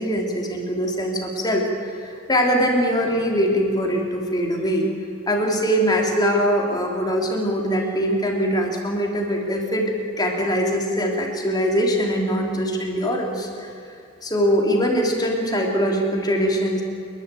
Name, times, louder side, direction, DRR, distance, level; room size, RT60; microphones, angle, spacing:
voice 1, 0.0-4.9 5.3-13.7 14.2-16.8, equal, 20° left, 0 dB, 3.1 m, -22 dB
28.5 x 11.5 x 9.2 m, 2.6 s
head